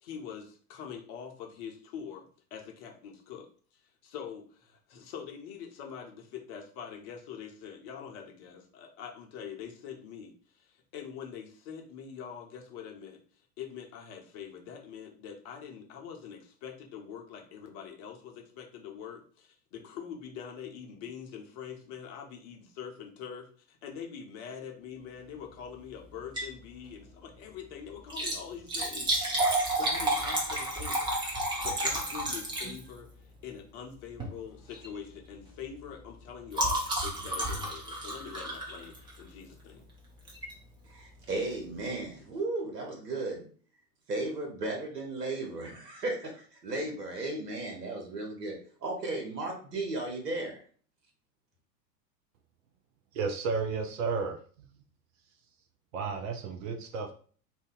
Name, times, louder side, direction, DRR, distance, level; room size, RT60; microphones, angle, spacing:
voice 1, 0.0-2.3 2.5-3.5 4.0-13.2 13.6-29.2 29.7-31.1 31.6-33.1 33.4-39.9, left 7 dB, 35° left, 3 dB, 0.7 m, -44 dB
Liquid, 26.2-26.6 27.0-27.1 28.0-33.1 34.1-34.4 34.7-35.0 35.2-39.3 40.3-40.5 41.1-41.2 41.3-41.4, right 1 dB, 10° right, 0.5 m, -31 dB
voice 2, 40.8-43.5 44.1-50.6, right 2 dB, 70° right, 2 dB, 1.1 m, -35 dB
voice 3, 53.1-54.4 54.7-54.8 55.9-57.1, right 4 dB, 55° right, 4 dB, 0.7 m, -32 dB
2.7 x 2.2 x 3.6 m, 0.44 s
figure-of-eight pair, 90°, 49 cm